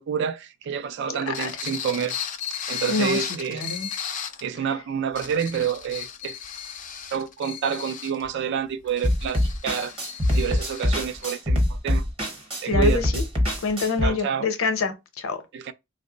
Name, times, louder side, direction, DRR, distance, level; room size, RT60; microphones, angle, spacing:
voice 1, 0.0-2.2 2.7-3.6 4.4-6.4 7.1-9.9 10.3-12.1 12.6-13.0 14.0-14.5 15.5-15.7, right 7 dB, 55° right, 0.3 m, -28 dB
voice 2, 1.1-1.5 2.9-3.9 12.6-13.2 13.6-15.4, left 4 dB, 75° left, 0.7 m, -26 dB
sound 1, 1.3-4.5 5.0-11.3, left 8 dB, 40° left, 0.4 m, -35 dB
sound 2, 9.0-14.1, left 1 dB, 30° right, 0.9 m, -24 dB
3.1 x 2.0 x 3.8 m
head